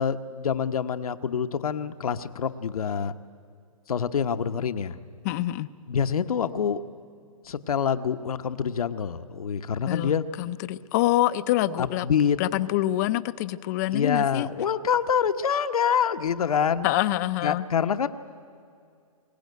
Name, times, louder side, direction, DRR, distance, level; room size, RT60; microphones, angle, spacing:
voice 1, 0.0-3.1 3.9-5.0 5.9-6.8 7.4-10.2 11.8-12.4 13.9-16.9 17.4-18.1, left 7 dB, 75° left, 10 dB, 1.0 m, -26 dB
voice 2, 5.2-5.7 9.9-10.1 10.4-12.1 12.4-14.5 16.8-17.7, left 15 dB, 30° left, 15 dB, 0.5 m, -26 dB
22.0 x 18.5 x 9.4 m, 2.3 s
hypercardioid pair, 145°, 19 cm